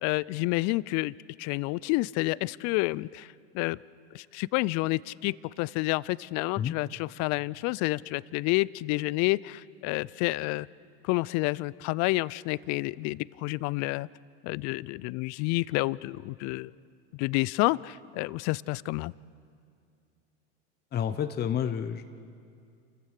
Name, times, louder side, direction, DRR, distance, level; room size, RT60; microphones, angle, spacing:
voice 1, 0.0-3.8 4.1-10.7 11.0-14.1 14.4-16.7 17.1-19.1, left 22 dB, 50° left, 22 dB, 0.5 m, -29 dB
voice 2, 20.9-22.1, left 9 dB, 30° left, 9 dB, 0.8 m, -29 dB
28.5 x 15.5 x 6.5 m, 2.3 s
hypercardioid pair, 100°, 35 cm